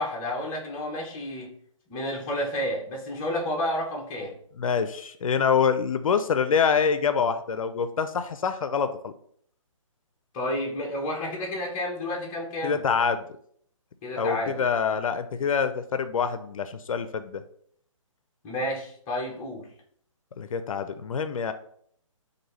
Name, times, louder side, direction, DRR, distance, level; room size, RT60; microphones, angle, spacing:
voice 1, 0.0-1.5 1.9-4.4 10.3-12.8 14.0-14.6 18.4-19.7, left 1 dB, 20° left, -1 dB, 0.7 m, -30 dB
voice 2, 4.6-9.1 12.6-13.2 14.2-17.4 20.4-21.5, left 6 dB, 80° left, 10 dB, 0.4 m, -25 dB
4.4 x 2.5 x 3.1 m, 0.63 s
hypercardioid pair, 155°, 17 cm